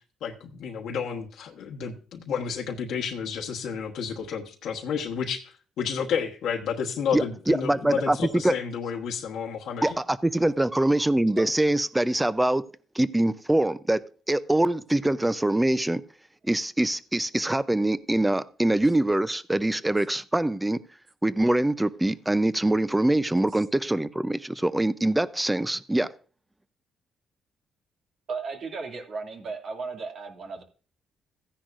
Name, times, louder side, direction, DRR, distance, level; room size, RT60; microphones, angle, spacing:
voice 1, 0.2-5.4 5.8-9.8, left 7 dB, 80° left, -1 dB, 1.3 m, -31 dB
voice 2, 7.1-8.5 9.8-12.6 12.9-14.0 14.3-16.0 16.4-20.8 21.2-26.1, right 1 dB, 10° right, 15 dB, 0.6 m, -24 dB
voice 3, 28.3-30.6, right 4 dB, 60° right, 3 dB, 2.4 m, -35 dB
15.5 x 10.0 x 2.6 m, 0.40 s
cardioid pair, 90°, 0 cm